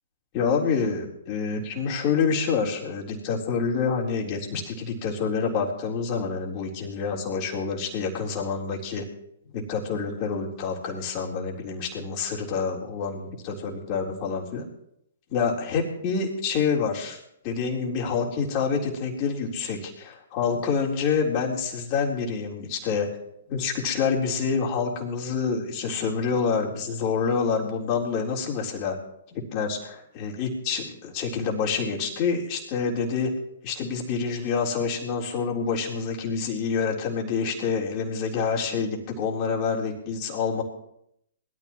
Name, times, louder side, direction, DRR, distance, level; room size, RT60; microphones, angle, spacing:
voice 1, 0.3-9.0 9.5-14.7 15.3-17.2 17.4-23.1 23.5-29.0 29.3-33.3 33.6-40.6, left 5 dB, 35° left, -1 dB, 3.8 m, -27 dB
21.0 x 13.5 x 3.1 m, 0.75 s
hypercardioid pair, 125°, 0 cm